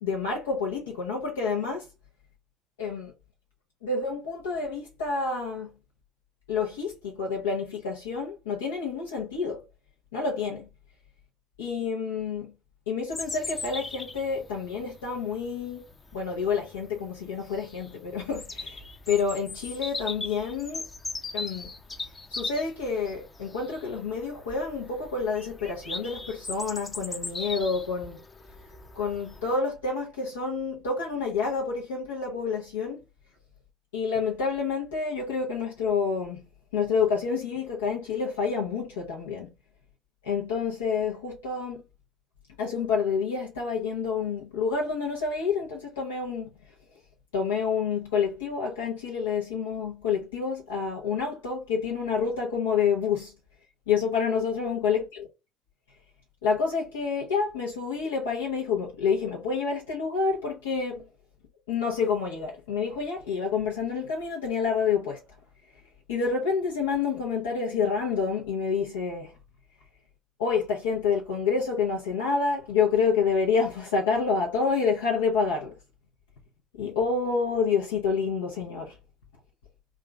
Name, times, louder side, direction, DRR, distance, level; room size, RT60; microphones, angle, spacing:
voice 1, 0.0-1.9 2.8-3.1 3.8-5.7 6.5-9.6 10.1-10.7 11.6-12.5 12.9-15.8 16.1-20.8 21.3-21.7 22.3-28.2 28.9-33.0 33.9-36.4 36.7-39.5 40.2-41.8 42.6-46.5 47.3-53.3 53.9-55.3 56.4-61.0 61.7-65.2 66.1-69.3 70.4-75.7 76.8-79.0, left 5 dB, 80° left, 0.9 m, -28 dB
Bird vocalization bird call bird song, 13.1-29.6, left 3 dB, 25° left, 0.7 m, -39 dB
3.7 x 2.5 x 3.4 m
hypercardioid pair, 70°, 0 cm